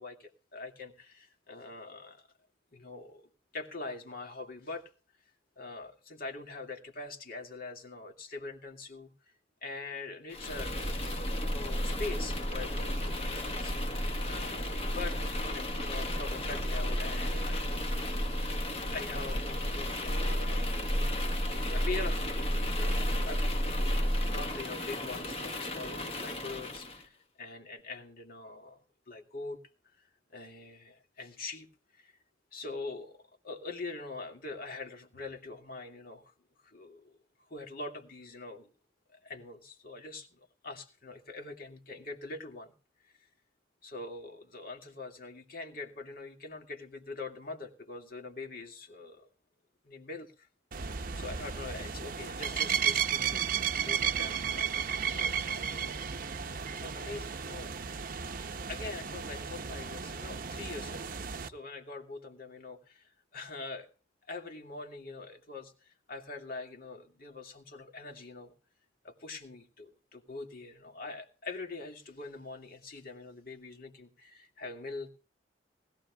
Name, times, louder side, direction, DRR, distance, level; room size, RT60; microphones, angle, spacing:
voice 1, 0.0-2.2 2.7-4.8 5.6-9.1 9.6-10.9 11.4-18.0 18.9-20.7 21.4-23.7 24.3-28.8 29.1-29.6 30.3-31.7 31.9-32.1 32.5-36.3 36.6-37.2 37.5-38.7 39.2-42.7 43.0-43.1 43.8-49.3 49.8-50.5 50.9-56.0 56.7-57.8 58.7-61.2 61.4-63.9 64.3-68.5 69.0-75.1, left 3 dB, 50° left, 4 dB, 2.1 m, -43 dB
sound 1, 10.3-27.0, equal, 30° left, 1.4 m, -32 dB
sound 2, 50.7-61.5, right 7 dB, 50° right, 0.7 m, -34 dB
19.5 x 14.5 x 2.3 m, 0.37 s
head